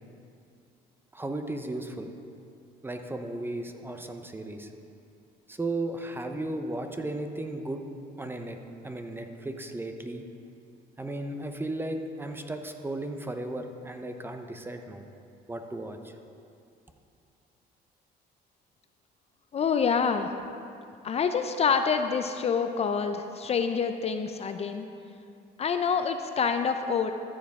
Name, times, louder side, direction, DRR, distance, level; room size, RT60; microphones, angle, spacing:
voice 1, 1.1-2.1 2.8-4.7 5.5-7.8 8.2-8.6 8.8-10.3 11.0-15.1 15.5-16.1, right 2 dB, 15° right, 6 dB, 0.7 m, -35 dB
voice 2, 19.5-20.3 21.0-24.9 25.6-27.1, left 6 dB, 40° left, 8 dB, 0.5 m, -27 dB
13.5 x 7.2 x 3.6 m, 2.5 s
cardioid pair, 110°, 17 cm